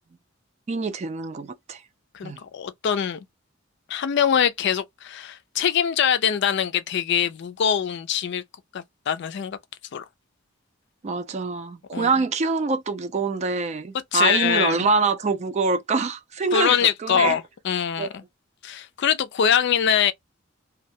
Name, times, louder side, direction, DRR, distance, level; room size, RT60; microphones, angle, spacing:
voice 1, 0.7-1.8 2.2-2.4 11.0-16.8 17.0-17.4 18.0-18.1, right 4 dB, 35° right, 0.4 m, -25 dB
voice 2, 2.1-3.2 3.9-8.4 8.7-9.6 9.9-10.0 11.9-12.1 14.1-14.8 16.5-18.2 18.6-20.1, left 8 dB, 60° left, 0.4 m, -23 dB
2.2 x 2.1 x 2.6 m
head